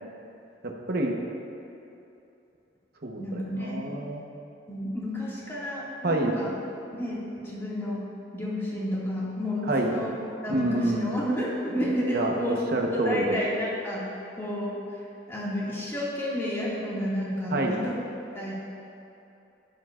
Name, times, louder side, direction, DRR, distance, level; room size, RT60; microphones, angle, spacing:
voice 1, 0.6-1.2 3.0-3.2 3.5-4.2 6.0-6.3 9.6-9.9 10.5-11.1 12.1-13.4 17.5-17.8, right 1 dB, 55° right, 0 dB, 1.0 m, -27 dB
voice 2, 3.2-3.8 4.7-6.5 6.9-8.0 8.3-10.1 10.4-12.6 12.9-14.1 14.4-14.8 15.3-18.0 18.3-18.5, left 1 dB, 15° left, -7 dB, 2.0 m, -31 dB
12.5 x 10.0 x 2.5 m, 2.9 s
head